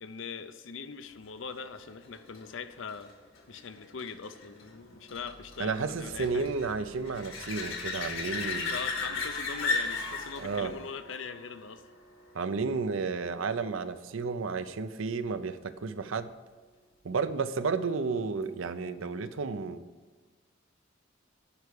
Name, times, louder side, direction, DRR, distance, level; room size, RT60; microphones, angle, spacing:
voice 1, 0.0-3.1 3.5-6.5 8.7-11.8, left 5 dB, 65° left, 11 dB, 0.6 m, -41 dB
sound 1, 1.5-12.8 18.4-18.5, left 4 dB, 90° left, 1.9 m, -37 dB
sound 2, 5.1-10.8, right 1 dB, 60° right, 3.5 m, -56 dB
voice 2, 5.6-8.8 10.4-10.7 12.3-16.3 17.0-19.8, right 4 dB, 75° right, 12 dB, 0.6 m, -32 dB
11.5 x 4.7 x 8.3 m, 1.4 s
head